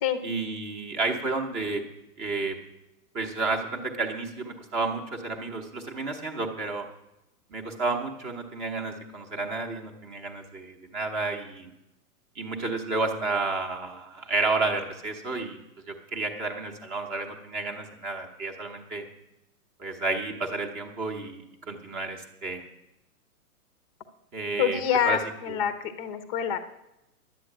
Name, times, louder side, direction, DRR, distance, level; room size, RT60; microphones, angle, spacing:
voice 1, 0.2-1.8 2.2-2.6 3.1-6.9 7.5-11.7 12.3-15.6 15.9-19.0 19.8-22.6 24.3-25.2 25.5-25.6, right 3 dB, 15° right, 2 dB, 0.8 m, -31 dB
voice 2, 24.6-26.6, left 9 dB, 25° left, 10 dB, 0.7 m, -26 dB
11.5 x 8.2 x 8.7 m, 0.91 s
hypercardioid pair, 160°, 46 cm